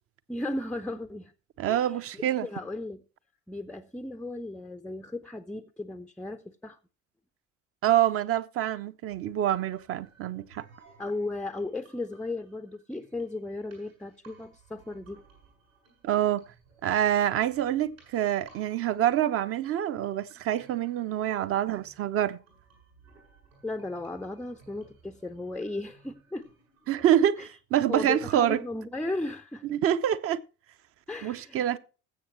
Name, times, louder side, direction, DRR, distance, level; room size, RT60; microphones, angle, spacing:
voice 1, 0.3-1.3 1.7-3.0 3.5-6.8 11.0-15.2 23.6-26.5 27.4-27.5 27.9-29.7 31.1-31.8, left 2 dB, ahead, 0.5 m, -36 dB
voice 2, 1.6-2.5 7.8-10.7 16.0-16.4 16.8-22.4 26.9-28.6 29.7-30.4 31.2-31.8, right 11 dB, 35° right, 0.7 m, -26 dB
sound 1, 9.1-27.1, right 4 dB, 75° right, 7.4 m, -59 dB
20.0 x 7.7 x 3.0 m
figure-of-eight pair, 60°, 40 cm